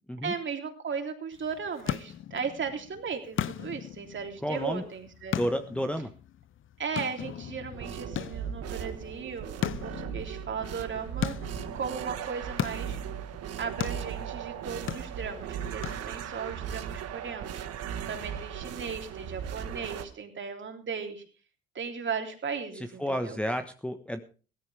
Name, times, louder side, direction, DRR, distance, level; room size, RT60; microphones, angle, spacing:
voice 1, 0.2-5.3 6.8-13.0 13.6-21.2 21.7-23.4, right 6 dB, 40° right, 4 dB, 3.4 m, -36 dB
sound 1, 1.3-16.5, left 10 dB, 45° left, 0.7 m, -38 dB
voice 2, 4.4-4.8 5.3-6.1 22.7-24.2, equal, 5° left, 6 dB, 1.3 m, -31 dB
sound 2, 7.7-20.0, right 9 dB, 55° right, 1.6 m, -37 dB
17.0 x 14.0 x 3.4 m, 0.37 s
hypercardioid pair, 60°, 29 cm